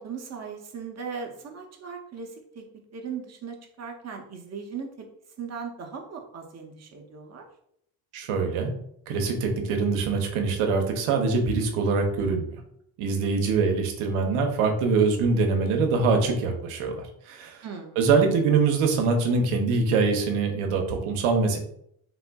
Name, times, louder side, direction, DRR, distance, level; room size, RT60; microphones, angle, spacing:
voice 1, 0.0-5.1 5.4-7.5 17.6-18.0, right 6 dB, 35° right, 3 dB, 0.6 m, -38 dB
voice 2, 8.1-8.7 9.1-12.6 13.0-17.6 18.0-21.6, right 4 dB, 80° right, 3 dB, 0.8 m, -24 dB
3.6 x 2.5 x 2.2 m, 0.71 s
cardioid pair, 100°, 50 cm